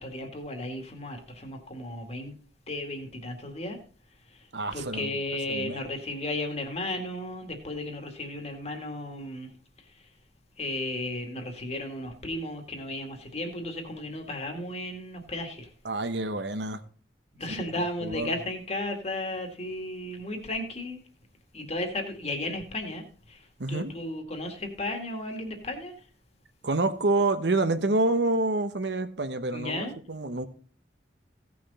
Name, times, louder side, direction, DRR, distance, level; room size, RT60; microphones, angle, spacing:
voice 1, 0.0-2.3 2.7-3.8 4.3-4.5 4.7-9.5 9.8-10.1 10.6-15.7 17.3-21.0 21.5-25.9 29.5-29.9, left 1 dB, 40° left, 2.1 m, -34 dB
voice 2, 4.5-5.1 5.5-5.8 15.8-16.8 18.0-18.3 23.6-23.9 26.6-30.5, right 2 dB, 75° right, 1.0 m, -27 dB
16.0 x 6.1 x 4.2 m
head